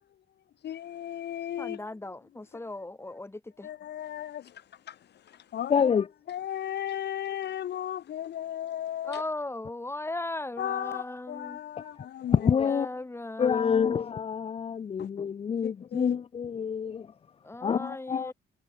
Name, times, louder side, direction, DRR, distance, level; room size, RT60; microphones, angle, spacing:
voice 1, 0.6-1.8 3.6-5.9 6.3-9.2 10.6-12.5 15.0-15.1 15.6-16.2, left 11 dB, 55° left, 1.0 m, -35 dB
voice 2, 1.6-3.7 9.0-11.6 12.6-14.0 17.4-18.3, left 2 dB, 10° left, 4.5 m, -37 dB
voice 3, 5.7-6.1 11.8-12.9 13.4-17.1 17.6-18.3, left 7 dB, 30° left, 0.5 m, -27 dB
cardioid pair, 115°, 20 cm